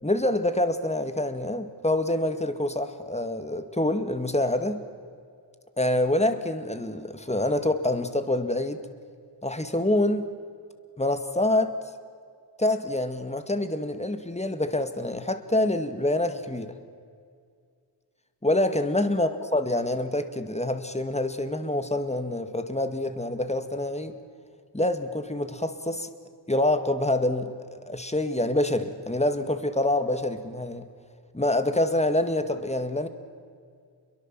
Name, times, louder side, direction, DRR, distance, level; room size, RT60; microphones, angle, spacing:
voice 1, 0.0-4.8 5.8-8.9 9.4-10.3 11.0-11.8 12.6-16.8 18.4-24.1 24.7-26.1 26.5-30.9 31.3-33.1, left 1 dB, 15° left, 9 dB, 2.0 m, -26 dB
28.5 x 23.0 x 7.6 m, 2.2 s
wide cardioid pair, 65°, 42 cm